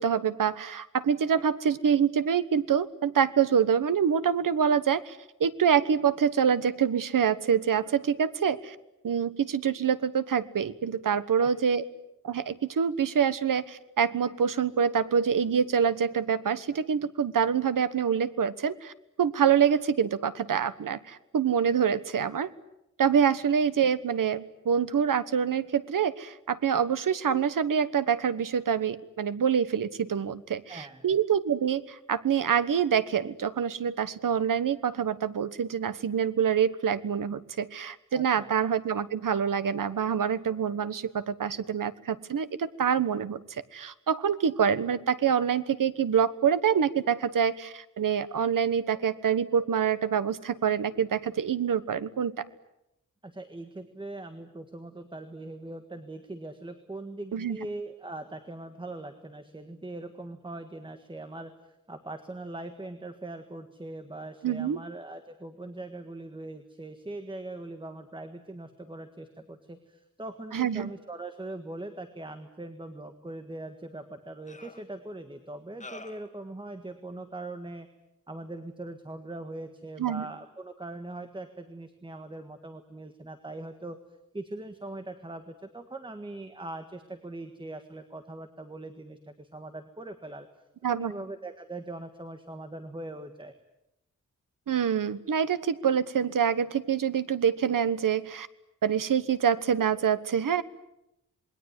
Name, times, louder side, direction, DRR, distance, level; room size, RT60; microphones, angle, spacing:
voice 1, 0.0-8.7 9.0-11.9 12.2-18.9 19.2-22.5 23.0-52.3 57.3-57.6 64.4-64.8 70.5-70.9 80.0-80.2 90.8-91.1 94.7-98.5 98.8-100.6, right 7 dB, 80° right, 14 dB, 1.3 m, -26 dB
voice 2, 30.7-31.0 38.1-38.5 53.2-77.9 78.3-84.0 84.3-90.5 90.8-93.5, right 2 dB, 15° right, 7 dB, 1.6 m, -41 dB
sound 1, 73.5-73.6 74.5-74.8 75.8-76.3, left 2 dB, 25° left, 1.6 m, -45 dB
27.5 x 21.5 x 9.6 m, 0.86 s
wide cardioid pair, 165°, 32 cm